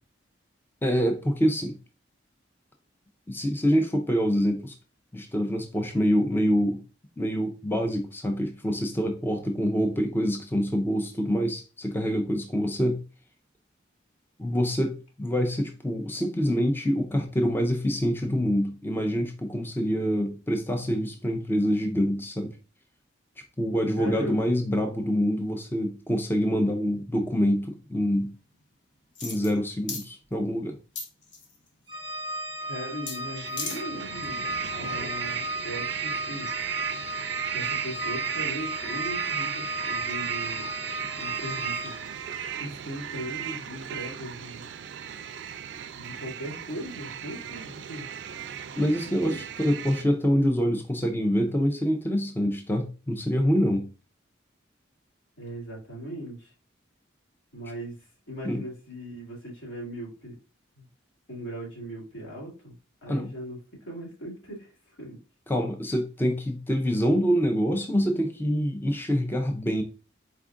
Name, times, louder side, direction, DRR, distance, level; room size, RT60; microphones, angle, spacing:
voice 1, 0.8-1.8 3.3-4.7 5.1-6.8 7.2-13.0 14.4-22.6 23.6-28.3 29.2-30.7 48.8-53.9 58.4-58.6 63.1-63.3 65.5-69.8, equal, 10° left, 0.4 m, -26 dB
voice 2, 24.0-24.4 32.6-34.4 34.7-36.5 37.5-40.7 41.2-41.9 42.6-44.7 45.9-48.1 49.1-49.4 55.4-56.5 57.5-60.3 60.8-60.9 61.3-62.7 63.0-65.2, equal, 90° left, 2.2 m, -39 dB
sound 1, 29.1-29.6 29.9-30.1 31.0-31.6 33.1-33.2 33.5-33.8 34.2-34.3, left 4 dB, 65° left, 0.9 m, -35 dB
Organ, 31.9-42.3, equal, 25° right, 0.7 m, -35 dB
sound 2, 32.9-50.0, right 9 dB, 65° right, 0.3 m, -35 dB
4.3 x 2.4 x 3.6 m
head